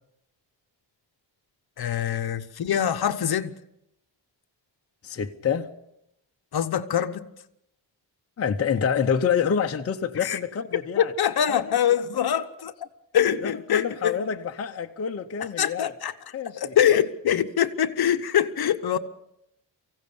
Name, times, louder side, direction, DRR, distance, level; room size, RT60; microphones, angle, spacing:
voice 1, 1.8-3.6 6.5-7.3 10.2-10.4 11.0-12.7 13.1-14.1 15.4-16.1 16.5-19.0, left 9 dB, 55° left, 1.0 m, -24 dB
voice 2, 5.0-5.7 8.4-11.1 11.5-11.7 13.4-15.9 16.3-16.7, left 7 dB, 30° left, 0.8 m, -27 dB
24.0 x 16.0 x 6.9 m
wide cardioid pair, 170°, 45 cm